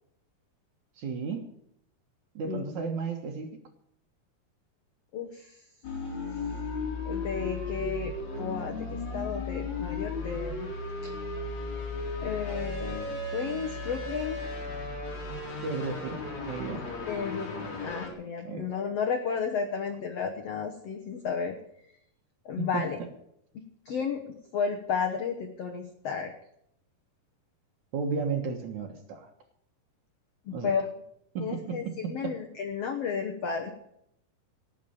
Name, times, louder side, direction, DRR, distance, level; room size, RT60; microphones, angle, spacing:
voice 1, 1.0-1.4 2.4-3.5 15.6-16.8 18.4-18.7 22.6-22.9 27.9-29.3 30.5-30.7 31.3-31.8 32.2-32.3, right 5 dB, 60° right, 4 dB, 2.2 m, -33 dB
voice 2, 5.1-5.6 7.0-10.7 12.2-14.5 17.1-21.6 22.4-23.0 23.5-26.3 30.4-30.9 31.4-33.7, left 6 dB, 80° left, 3 dB, 1.4 m, -33 dB
sound 1, 5.8-18.1, left 3 dB, 45° left, 4.3 m, -35 dB
18.5 x 6.5 x 8.7 m, 0.74 s
omnidirectional pair, 4.7 m